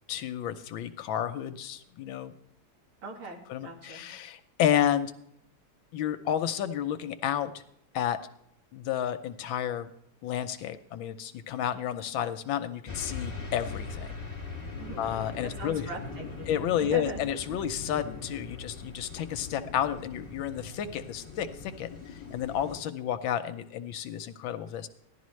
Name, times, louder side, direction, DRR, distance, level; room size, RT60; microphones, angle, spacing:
voice 1, 0.1-2.3 3.5-5.1 5.9-7.6 7.9-8.2 8.7-9.9 10.2-14.1 15.0-15.9 16.5-24.9, left 10 dB, 75° left, 10 dB, 1.3 m, -31 dB
voice 2, 3.0-4.0 14.8-15.0 15.4-16.5 16.8-17.8, right 2 dB, 80° right, 0 dB, 3.0 m, -40 dB
sound 1, 12.9-22.8, left 4 dB, 15° left, 1.9 m, -41 dB
16.0 x 11.5 x 3.1 m, 0.74 s
omnidirectional pair, 2.4 m